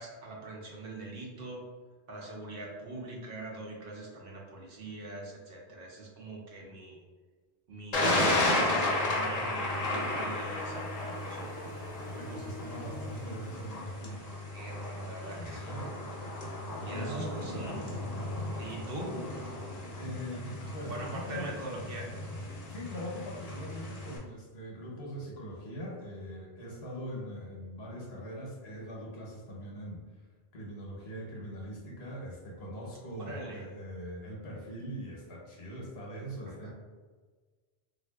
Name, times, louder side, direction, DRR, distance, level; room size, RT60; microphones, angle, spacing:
voice 1, 0.0-1.6 2.1-7.0 7.7-11.5 14.5-15.8 16.8-17.8 18.5-19.2 20.9-22.1 33.2-33.7 36.4-36.7, right 2 dB, 60° right, -2 dB, 0.8 m, -42 dB
Thunder, 7.9-24.2, left 2 dB, 45° left, 0.7 m, -34 dB
sound 1, 9.5-14.3, right 1 dB, 85° right, 0.9 m, -49 dB
voice 2, 12.0-14.2 15.4-15.9 16.3-17.8 20.0-21.5 22.7-30.0 30.5-36.7, equal, 70° left, -3 dB, 1.0 m, -42 dB
3.5 x 2.5 x 2.2 m, 1.4 s
omnidirectional pair, 1.1 m